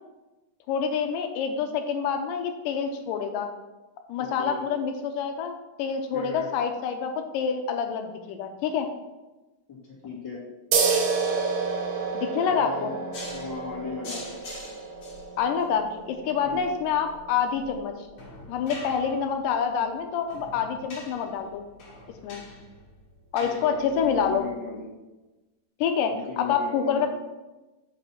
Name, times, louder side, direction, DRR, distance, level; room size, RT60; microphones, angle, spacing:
voice 1, 0.7-3.5 4.1-8.9 12.1-12.9 15.4-17.9 18.5-21.7 22.2-22.4 23.3-24.4 25.8-27.1, left 7 dB, 85° left, 5 dB, 2.4 m, -27 dB
voice 2, 4.2-4.6 6.1-6.5 9.7-9.8 10.0-10.4 12.4-12.9 13.2-14.2 16.4-16.6 23.4-24.9 26.1-27.1, left 5 dB, 35° left, -6 dB, 2.2 m, -37 dB
sound 1, 10.7-17.8, right 5 dB, 80° right, 2.6 m, -30 dB
sound 2, 13.1-24.4, left 2 dB, 55° left, 2.7 m, -45 dB
5.9 x 5.2 x 5.7 m, 1.1 s
omnidirectional pair, 3.8 m